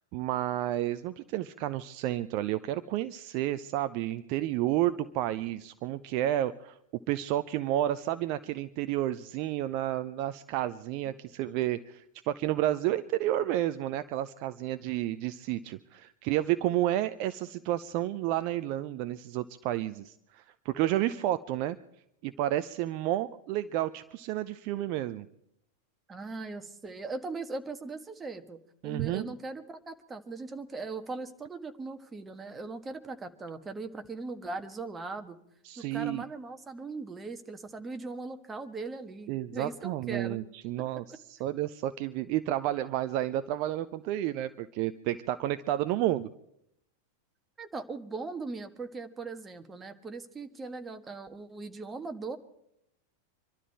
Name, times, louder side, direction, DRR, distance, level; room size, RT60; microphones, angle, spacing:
voice 1, 0.1-6.8 7.1-21.8 22.2-25.3 28.8-29.3 35.6-36.2 39.3-41.0 41.3-46.3, right 13 dB, 45° right, 11 dB, 0.6 m, -31 dB
voice 2, 26.1-35.4 35.8-40.4 40.8-40.9 47.6-52.4, right 3 dB, 15° right, 6 dB, 1.5 m, -39 dB
25.5 x 12.5 x 4.5 m, 0.78 s
figure-of-eight pair, 90°, 0 cm